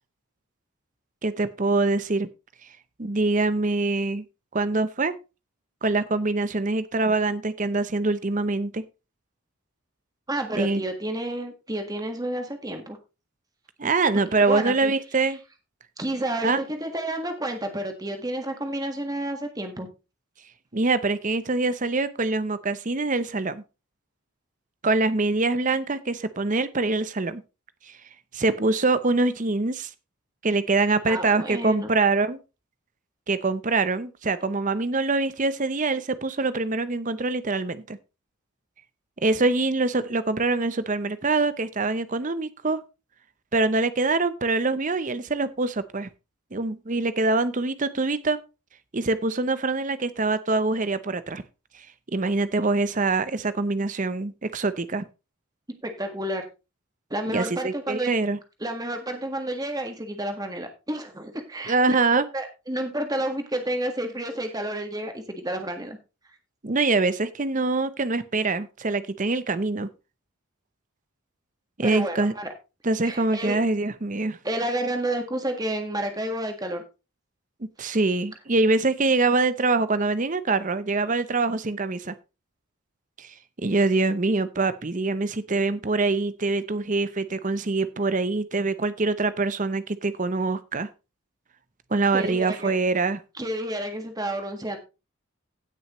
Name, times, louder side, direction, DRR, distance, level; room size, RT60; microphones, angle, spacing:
voice 1, 1.2-2.3 3.0-4.2 4.5-5.1 5.8-8.8 10.5-10.8 13.8-15.4 16.4-16.6 20.7-23.6 24.8-27.4 27.9-28.0 28.3-29.9 30.4-32.4 33.3-38.0 39.2-42.8 43.5-46.1 46.5-48.4 48.9-51.4 52.1-55.0 57.3-58.4 61.7-62.3 66.6-69.9 71.8-72.3 72.8-74.4 77.8-82.2 83.2-90.9 91.9-93.2, right 3 dB, 35° right, 13 dB, 0.7 m, -24 dB
voice 2, 10.3-13.0 14.4-14.9 15.2-15.3 16.0-19.9 31.1-31.9 55.8-56.4 57.1-58.1 58.6-61.9 62.3-66.0 71.8-72.5 73.0-73.6 74.4-76.8 77.8-77.9 92.1-92.7 93.4-94.8, right 1 dB, 15° right, 5 dB, 1.6 m, -30 dB
16.5 x 6.3 x 3.1 m, 0.29 s
head